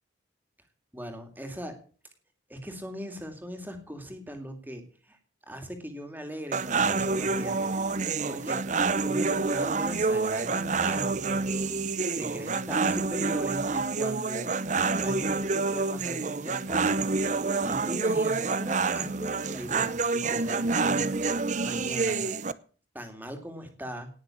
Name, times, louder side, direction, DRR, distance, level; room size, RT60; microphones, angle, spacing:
voice 1, 0.9-1.8 2.5-5.2 5.5-7.7 8.2-11.5 11.8-14.5 14.9-17.0 17.6-21.1 21.6-22.2 22.9-24.1, equal, 10° right, 6 dB, 2.5 m, -39 dB
sound 1, 6.5-22.5, right 4 dB, 40° right, 0.7 m, -27 dB
18.0 x 6.6 x 8.6 m, 0.41 s
head